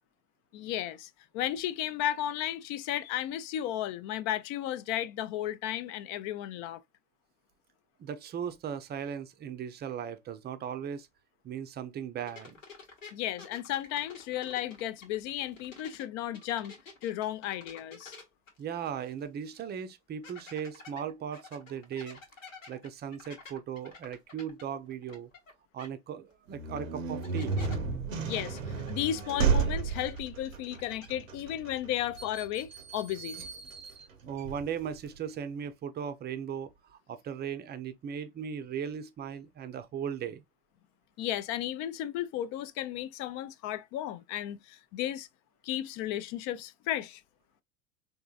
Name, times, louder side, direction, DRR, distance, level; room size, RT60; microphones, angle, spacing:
voice 1, 0.5-6.8 13.1-16.8 17.0-18.1 28.2-28.6 28.9-33.4 41.2-45.3 45.6-47.2, left 12 dB, 45° left, 0.5 m, -34 dB
voice 2, 8.0-11.1 11.4-12.6 18.6-22.2 22.7-25.3 25.7-27.6 34.3-40.4, right 8 dB, 25° right, 0.5 m, -37 dB
sound 1, 12.3-16.0 16.3-19.2 19.5-19.6 20.2-25.5 25.8-25.9 26.8-26.9 27.2-27.8 28.3-30.4 30.7-31.1, left 4 dB, 85° left, 1.3 m, -50 dB
sound 2, 26.5-35.2, right 5 dB, 90° right, 0.7 m, -33 dB
3.7 x 2.6 x 2.3 m
hypercardioid pair, 80°, 38 cm